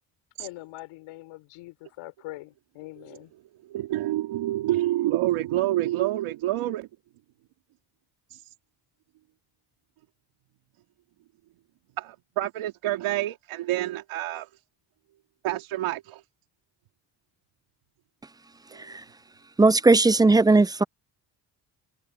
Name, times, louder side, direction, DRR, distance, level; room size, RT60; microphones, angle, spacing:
voice 1, 0.4-3.3, left 18 dB, 85° left, 4.4 m, -43 dB
voice 2, 3.7-6.9 12.0-14.5 15.4-16.2 18.7-18.8, right 15 dB, 80° right, 2.7 m, -27 dB
voice 3, 19.6-20.8, right 3 dB, 10° right, 0.4 m, -17 dB
open air
supercardioid pair, 60°, 48 cm